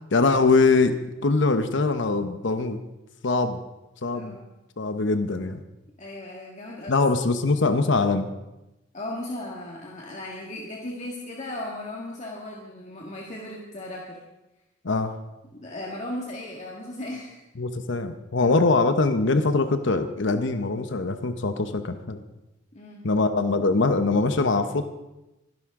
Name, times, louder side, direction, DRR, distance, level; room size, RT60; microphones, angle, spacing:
voice 1, 0.1-0.9 1.2-2.8 3.2-3.6 4.0-4.4 4.8-5.6 6.9-8.3 14.8-15.1 17.6-22.2 23.0-24.9, left 3 dB, 70° left, 9 dB, 0.9 m, -22 dB
voice 2, 4.1-4.5 6.0-7.0 8.9-14.2 15.6-17.4 18.4-18.6 22.7-23.0, left 1 dB, 40° left, -2 dB, 1.8 m, -36 dB
24.5 x 11.0 x 3.7 m, 0.97 s
head